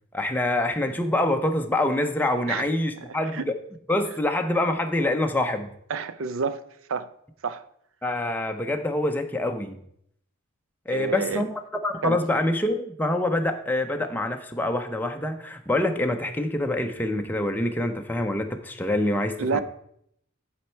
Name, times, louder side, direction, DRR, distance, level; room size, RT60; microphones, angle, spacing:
voice 1, 0.1-3.5 3.9-5.7 8.0-9.8 10.9-11.5 11.8-19.6, left 1 dB, 10° left, 0.6 m, -26 dB
voice 2, 5.9-6.6 6.9-7.1 7.4-7.6 10.9-11.5 12.0-12.2 19.4-19.6, right 5 dB, 65° right, 0.5 m, -28 dB
11.0 x 4.3 x 4.5 m
head